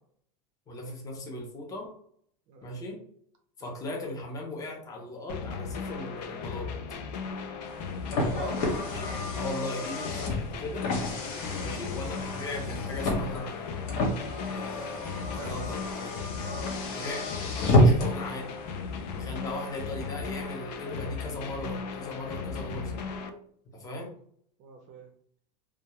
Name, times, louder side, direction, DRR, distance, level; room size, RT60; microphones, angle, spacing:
voice 1, 0.7-1.9 2.6-3.0 3.6-6.7 8.9-10.9 11.6-13.9 14.5-16.3 16.8-18.6 19.2-23.0 23.7-24.1, left 1 dB, 15° left, -1 dB, 0.6 m, -38 dB
sound 1, 5.3-23.3, left 5 dB, 85° left, 0.5 m, -37 dB
Car, 7.6-18.3, left 1 dB, 60° left, 0.8 m, -29 dB
voice 2, 8.1-8.6 9.7-9.8 11.5-11.7 15.4-15.6 16.4-16.8 19.1-19.3 24.6-25.1, right 2 dB, 35° right, 4 dB, 0.5 m, -44 dB
2.3 x 2.2 x 2.9 m, 0.63 s
supercardioid pair, 145°, 21 cm